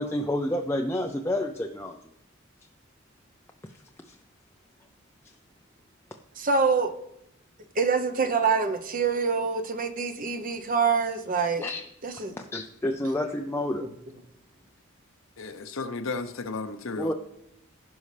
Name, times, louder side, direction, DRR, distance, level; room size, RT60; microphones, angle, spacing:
voice 1, 0.0-2.0 4.1-4.2 11.6-11.8 12.5-13.8 17.0-17.1, left 1 dB, 10° left, 2 dB, 0.4 m, -29 dB
voice 2, 6.3-6.9 7.7-11.7 12.0-12.3 13.8-13.9, right 5 dB, 40° right, 7 dB, 0.8 m, -25 dB
voice 3, 15.4-17.1, left 3 dB, 70° left, 9 dB, 0.8 m, -34 dB
16.0 x 5.4 x 3.3 m, 0.81 s
head